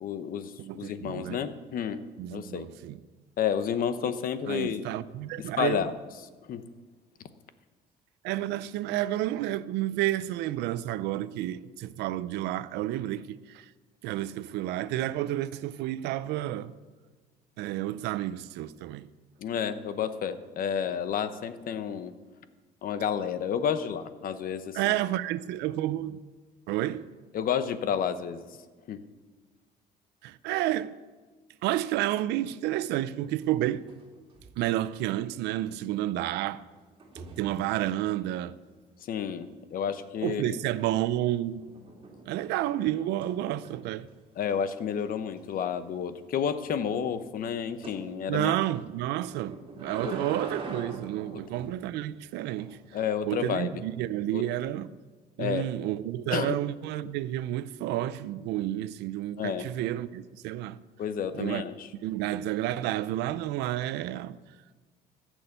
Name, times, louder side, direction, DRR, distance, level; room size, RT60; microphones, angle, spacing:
voice 1, 0.0-2.0 2.3-2.7 3.4-4.9 5.6-5.9 6.5-6.6 19.4-22.1 22.8-24.9 27.3-28.5 28.9-29.0 39.1-40.6 44.4-48.5 50.0-50.1 51.3-51.4 52.9-53.7 54.3-54.4 55.4-55.7 56.3-56.6 59.4-59.7 61.0-61.9, left 8 dB, 55° left, 0.9 m, -30 dB
voice 2, 0.6-1.4 2.2-3.0 4.5-5.8 8.2-13.7 14.0-16.7 17.6-19.1 24.7-26.2 26.7-27.0 30.2-30.9 31.6-33.8 34.6-36.6 37.4-38.5 40.2-41.6 42.2-44.1 48.3-52.8 53.2-54.9 55.4-60.8 61.3-61.6 62.0-64.4, right 14 dB, 85° right, 0.5 m, -30 dB
sound 1, 33.4-34.0 34.3-34.7 37.0-37.5 40.7-41.1 41.6-44.0 44.4-44.5 44.9-45.0 45.4-45.5 47.8-48.0 49.3-51.8 52.6-53.0, right 3 dB, 30° right, 2.7 m, -43 dB
14.5 x 6.3 x 8.0 m
cardioid pair, 110°, 17 cm